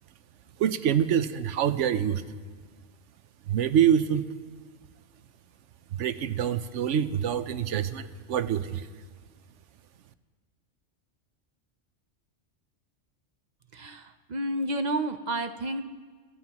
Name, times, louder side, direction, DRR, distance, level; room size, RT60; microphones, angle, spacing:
voice 1, 0.6-2.2 3.5-4.3 5.9-8.9, right 9 dB, 75° right, 12 dB, 1.0 m, -25 dB
voice 2, 13.7-15.8, right 1 dB, 45° right, 8 dB, 0.7 m, -30 dB
28.5 x 16.0 x 3.0 m, 1.5 s
omnidirectional pair, 1.3 m